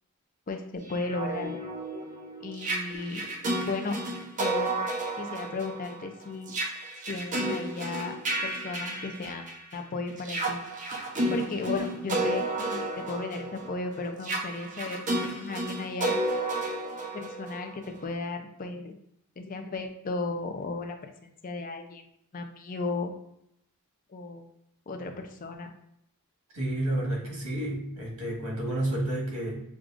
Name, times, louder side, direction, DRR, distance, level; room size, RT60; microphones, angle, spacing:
voice 1, 0.5-1.6 2.4-3.2 3.6-3.9 4.4-6.5 7.1-9.4 9.7-10.6 11.3-16.2 17.1-19.0 19.4-22.0 22.3-23.1 24.1-24.4 24.9-25.7, left 3 dB, 40° left, 5 dB, 0.4 m, -35 dB
sound 1, 0.9-9.7 10.2-18.0, right 1 dB, 35° right, 0.7 m, -32 dB
voice 2, 26.5-29.6, right 1 dB, 85° right, -3 dB, 1.6 m, -30 dB
6.3 x 2.4 x 2.4 m, 0.77 s
head